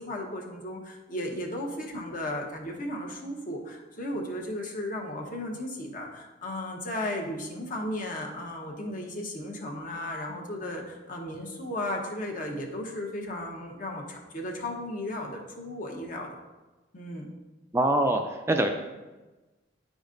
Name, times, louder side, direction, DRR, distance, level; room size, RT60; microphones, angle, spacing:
voice 1, 0.0-16.4 16.9-17.2, left 1 dB, 50° left, 0 dB, 1.0 m, -35 dB
voice 2, 17.7-18.2 18.5-18.7, right 1 dB, 15° right, 4 dB, 0.4 m, -23 dB
9.2 x 5.1 x 2.5 m, 1.1 s
head